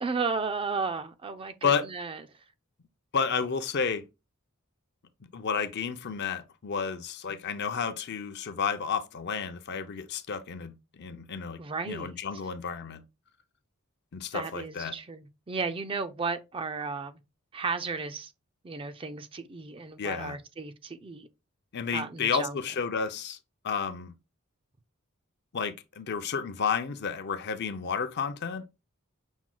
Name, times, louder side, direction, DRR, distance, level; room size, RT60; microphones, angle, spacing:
voice 1, 0.0-2.2 11.6-12.1 14.3-17.1 17.5-18.3 18.6-21.3 21.9-22.6, right 4 dB, 25° right, 0.4 m, -34 dB
voice 2, 3.1-4.0 5.3-10.7 11.0-11.6 11.8-13.0 14.1-14.9 20.0-20.4 21.7-23.4 23.6-24.1 25.5-28.6, left 6 dB, 50° left, 0.5 m, -31 dB
6.0 x 2.2 x 3.8 m
head